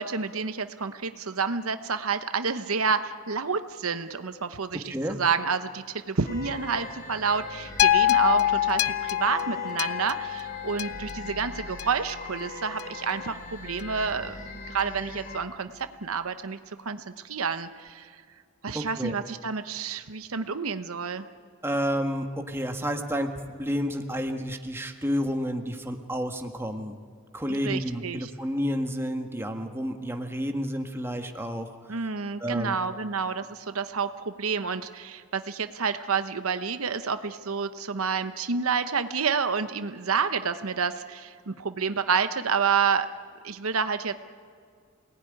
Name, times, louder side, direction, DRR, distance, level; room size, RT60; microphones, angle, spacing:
voice 1, 0.0-18.2 18.6-21.2 27.5-28.3 31.9-43.1 43.4-44.1, right 5 dB, 75° right, 10 dB, 1.0 m, -29 dB
sound 1, 6.2-15.4, left 3 dB, 45° left, 2.9 m, -41 dB
sound 2, 7.8-12.1 12.8-12.9, left 12 dB, 90° left, 0.6 m, -25 dB
voice 2, 18.7-19.1 21.6-27.0 27.3-31.7 32.4-32.7, equal, 10° right, 4 dB, 1.6 m, -30 dB
28.0 x 19.0 x 9.9 m, 2.1 s
head